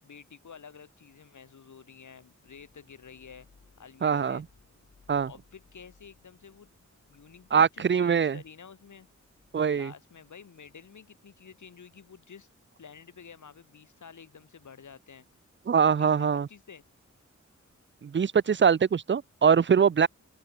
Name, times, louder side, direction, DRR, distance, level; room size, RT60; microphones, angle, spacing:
voice 1, 0.0-3.5 3.8-4.4 5.2-6.7 7.1-9.1 9.7-12.5 12.8-15.2 16.0-16.8, left 6 dB, 90° left, 2.9 m, -50 dB
sound 1, 2.4-11.9 12.3-12.7 13.4-13.7, left 5 dB, 65° left, 8.0 m, -64 dB
voice 2, 4.0-4.4 5.1-5.3 7.5-8.4 9.5-9.9 15.7-16.5 18.0-20.1, right 6 dB, 40° right, 0.5 m, -23 dB
open air
wide cardioid pair, 105°, 29 cm